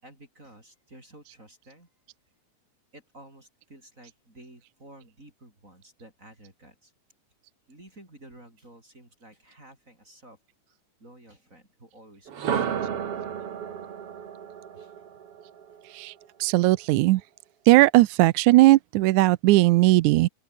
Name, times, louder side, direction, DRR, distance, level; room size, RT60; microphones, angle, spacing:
voice 1, 0.0-1.9 2.9-6.9 7.7-10.4 10.7-13.8 14.7-15.0, right 1 dB, 25° right, 6.7 m, -52 dB
sound 1, 12.3-16.2, right 8 dB, 55° right, 2.6 m, -32 dB
voice 2, 16.4-17.2 17.7-20.3, right 18 dB, 85° right, 2.0 m, -18 dB
open air
omnidirectional pair, 3.5 m